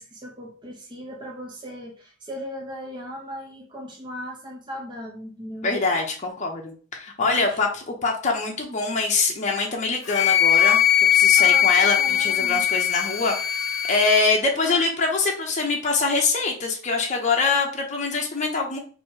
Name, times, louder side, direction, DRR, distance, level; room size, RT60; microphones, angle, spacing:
voice 1, 0.0-5.7 7.2-7.6 11.4-12.6 14.5-14.8, equal, 20° right, -1 dB, 0.6 m, -37 dB
voice 2, 5.6-13.4 13.9-18.8, left 4 dB, 35° left, 0 dB, 0.7 m, -24 dB
Wind instrument woodwind instrument, 10.1-14.3, left 10 dB, 65° left, 0.4 m, -20 dB
3.0 x 2.7 x 4.4 m, 0.40 s
head